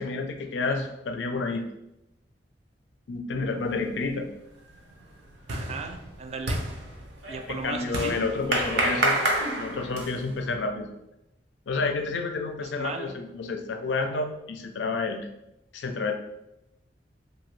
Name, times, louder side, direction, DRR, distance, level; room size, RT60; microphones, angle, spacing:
voice 1, 0.0-1.6 3.1-4.3 7.5-9.2 9.6-10.9 11.7-15.3 15.7-16.1, left 3 dB, 75° left, 5 dB, 0.4 m, -30 dB
sound 1, 3.9-4.2 4.6-10.4, right 2 dB, 75° right, 0.7 m, -29 dB
voice 2, 5.5-6.6 7.3-8.2 11.8-12.1 12.6-13.2, right 4 dB, 35° right, 5 dB, 0.3 m, -37 dB
2.8 x 2.7 x 3.1 m, 0.88 s
head